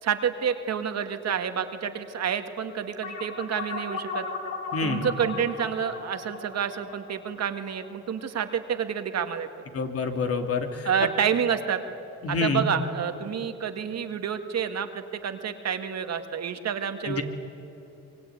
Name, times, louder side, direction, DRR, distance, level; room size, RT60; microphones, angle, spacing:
voice 1, 0.0-4.2 4.8-9.5 10.9-11.8 12.3-17.2, right 8 dB, 60° right, 7 dB, 2.0 m, -29 dB
sound 1, 3.0-7.9, left 4 dB, 70° left, 3.8 m, -36 dB
voice 2, 4.7-5.1 9.7-10.9 12.2-12.6 17.0-17.2, left 4 dB, 50° left, 5 dB, 2.9 m, -27 dB
24.5 x 23.0 x 9.6 m, 2.8 s
cardioid pair, 90°, 30 cm